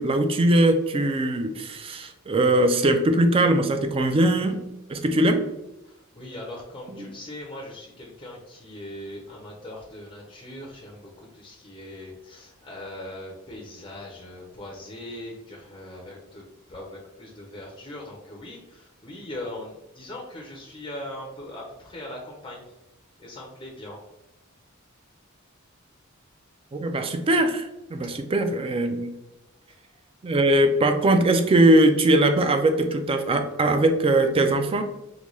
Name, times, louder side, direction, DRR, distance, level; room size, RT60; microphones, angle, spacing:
voice 1, 0.0-4.6 4.9-5.4 6.9-7.1 26.7-29.1 30.2-34.8, right 1 dB, 25° right, 7 dB, 0.4 m, -21 dB
voice 2, 5.8-22.7 23.2-24.0 28.0-28.2, left 1 dB, 25° left, -2 dB, 0.5 m, -40 dB
3.8 x 2.2 x 3.0 m, 0.93 s
head